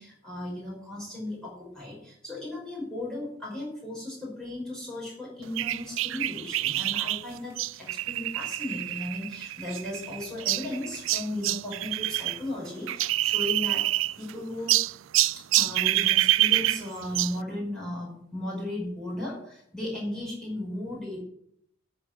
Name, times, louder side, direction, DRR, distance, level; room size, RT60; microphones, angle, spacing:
voice 1, 0.0-13.8 14.2-14.8 15.6-21.2, left 1 dB, 5° left, -6 dB, 5.3 m, -36 dB
sound 1, 5.6-12.4 12.6-14.3 14.7-17.4, right 16 dB, 70° right, 0.4 m, -27 dB
14.0 x 5.2 x 9.1 m, 0.71 s
head